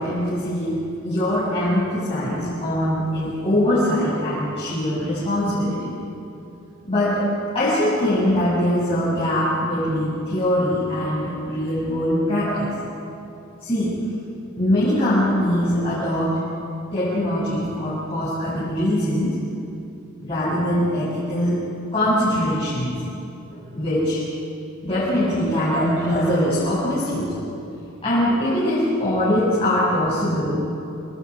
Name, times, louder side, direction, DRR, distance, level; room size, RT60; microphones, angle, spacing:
voice 1, 0.0-5.9 6.8-7.3 7.5-12.8 13.6-14.0 14.6-16.4 16.9-19.4 20.2-21.6 21.9-23.0 23.5-24.2 24.8-27.3 28.0-30.7, left 1 dB, 25° left, -10 dB, 7.4 m, -22 dB
29.0 x 27.5 x 5.0 m, 2.7 s
head